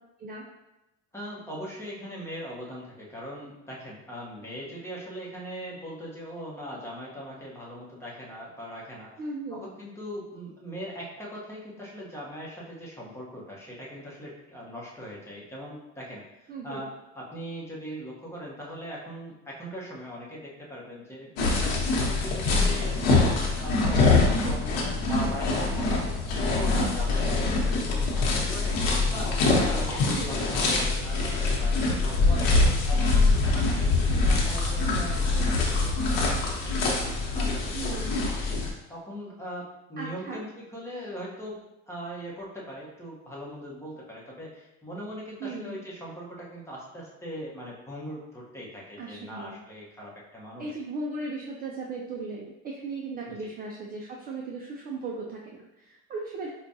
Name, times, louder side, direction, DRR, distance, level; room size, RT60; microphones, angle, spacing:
voice 1, 1.1-9.1 9.5-23.3 23.6-28.8 29.1-32.6 32.9-36.8 37.3-38.6 38.9-50.8 53.2-53.4, equal, 10° left, -4 dB, 0.9 m, -40 dB
voice 2, 9.2-9.7 16.5-16.9 23.9-24.2 30.1-30.5 32.4-32.9 37.7-38.3 40.0-40.4 45.4-45.8 49.0-49.6 50.6-56.5, right 3 dB, 30° right, -1 dB, 0.3 m, -37 dB
sound 1, 21.4-38.7, left 3 dB, 80° left, 0.9 m, -24 dB
4.9 x 2.3 x 2.7 m, 0.94 s
cardioid pair, 125°, 32 cm